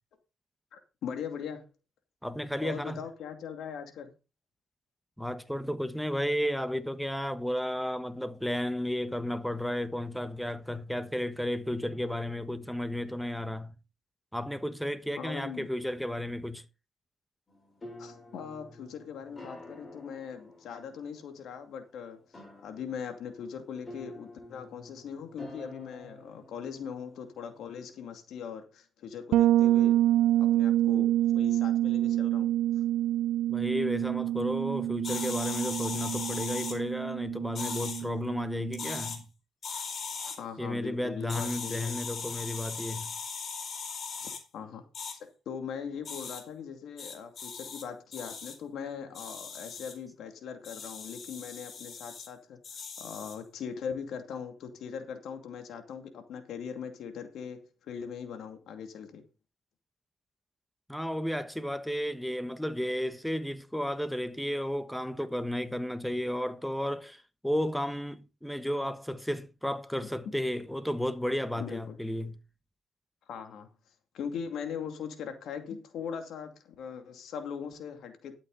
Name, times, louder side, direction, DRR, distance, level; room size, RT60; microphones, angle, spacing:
voice 1, 0.7-1.7 2.6-4.1 15.2-15.7 18.0-22.2 22.6-30.0 30.4-32.5 40.2-42.0 44.2-45.2 45.5-52.6 53.0-59.2 71.6-72.0 73.3-73.7 74.1-78.3, left 7 dB, 75° left, 2.5 m, -40 dB
voice 2, 2.2-3.0 5.2-13.7 14.3-16.6 33.5-39.3 40.6-43.1 60.9-72.4, left 1 dB, ahead, 1.3 m, -33 dB
sound 1, 17.5-28.0, left 1 dB, 30° left, 7.7 m, -50 dB
Bass guitar, 29.3-39.0, right 13 dB, 80° right, 0.6 m, -27 dB
sound 2, 35.0-36.8 37.5-38.0 38.7-39.2 39.6-40.4 41.3-44.4 44.9-45.1 46.0-46.4 47.0-47.8 48.1-48.5 49.1-49.9 50.6-52.3 52.6-53.4, left 5 dB, 55° left, 4.1 m, -38 dB
12.0 x 8.8 x 4.0 m
cardioid pair, 90°, 0 cm